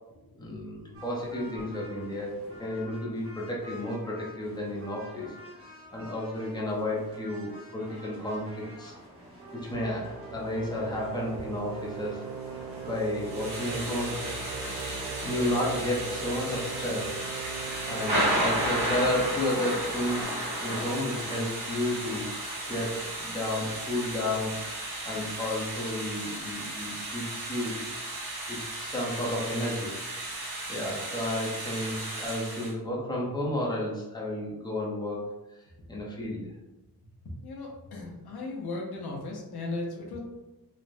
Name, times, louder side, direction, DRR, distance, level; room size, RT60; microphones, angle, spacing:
voice 1, 0.4-8.9 9.5-12.2 12.8-14.2 15.2-17.2 17.6-20.3 20.6-22.3 22.7-27.8 28.1-29.9 30.7-35.3 35.9-36.5, left 1 dB, 10° left, -4 dB, 0.6 m, -32 dB
sound 1, 0.9-20.2, equal, 35° right, 0.8 m, -47 dB
sound 2, 9.7-19.1, right 5 dB, 60° right, 0.5 m, -40 dB
Thunder / Rain, 13.2-32.7, right 1 dB, 85° right, 1.0 m, -34 dB
voice 2, 37.4-40.2, left 2 dB, 75° left, -2 dB, 0.7 m, -36 dB
3.2 x 2.1 x 2.5 m, 1.0 s
wide cardioid pair, 155°, 38 cm